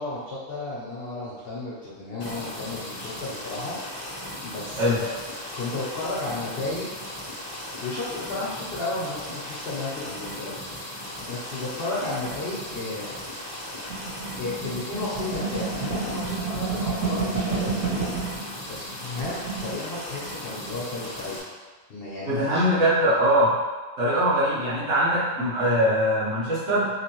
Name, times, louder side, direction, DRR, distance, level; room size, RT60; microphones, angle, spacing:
voice 1, 0.0-3.7 4.4-5.1 5.5-6.9 7.8-10.6 11.2-13.1 14.4-18.2 18.7-21.4 21.9-22.6, left 2 dB, 60° left, -7 dB, 0.9 m, -33 dB
sound 1, 2.2-21.4, left 1 dB, 25° left, 0.7 m, -37 dB
sound 2, 13.9-18.4 18.8-18.9 19.1-19.7, right 5 dB, 30° right, 1.5 m, -29 dB
voice 2, 22.3-23.6 24.0-26.9, equal, 85° right, -9 dB, 1.4 m, -22 dB
3.8 x 3.0 x 2.9 m, 1.3 s
omnidirectional pair, 1.2 m